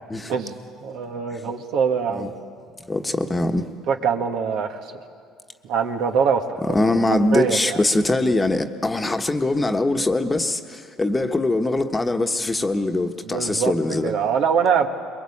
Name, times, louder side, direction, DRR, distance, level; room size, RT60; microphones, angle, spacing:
voice 1, 0.3-2.3 3.9-4.8 5.6-6.6 7.3-7.8 13.3-13.7 14.0-14.9, right 6 dB, 65° right, 4 dB, 1.8 m, -23 dB
voice 2, 2.8-3.7 6.7-14.1, left 2 dB, 20° left, 6 dB, 1.4 m, -22 dB
22.5 x 21.5 x 8.7 m, 2.2 s
hypercardioid pair, 75°, 0 cm